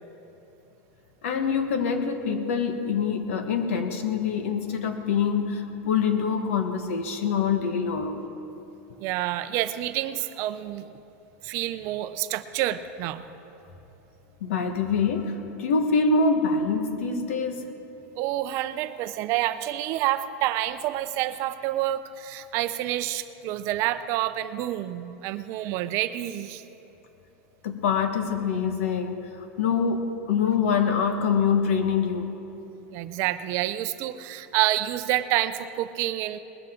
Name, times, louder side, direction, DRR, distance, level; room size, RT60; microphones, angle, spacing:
voice 1, 1.2-8.2 14.4-17.7 27.6-32.3, left 5 dB, 85° left, 6 dB, 1.5 m, -25 dB
voice 2, 9.0-10.9 11.4-13.2 18.2-26.6 32.9-36.4, right 14 dB, 45° right, 11 dB, 0.5 m, -28 dB
20.5 x 13.5 x 3.8 m, 2.9 s
supercardioid pair, 160°, 7 cm